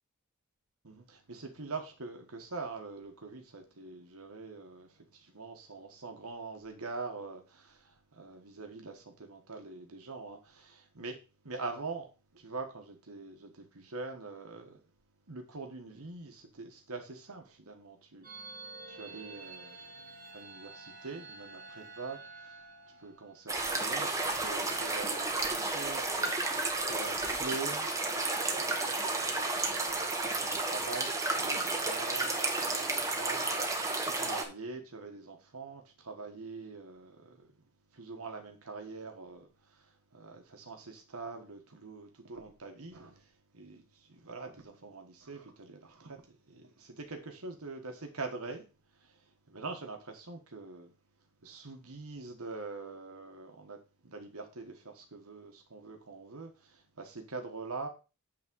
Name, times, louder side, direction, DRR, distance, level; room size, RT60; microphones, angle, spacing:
voice 1, 0.8-11.2 11.4-14.8 15.3-20.0 20.3-37.7 37.9-48.6 48.9-50.9 51.4-57.9, right 3 dB, 70° right, 1.3 m, -44 dB
sound 1, 18.2-23.6, right 3 dB, 40° right, 1.5 m, -49 dB
sound 2, 23.5-34.4, right 2 dB, 15° right, 1.3 m, -32 dB
8.5 x 3.6 x 6.1 m
head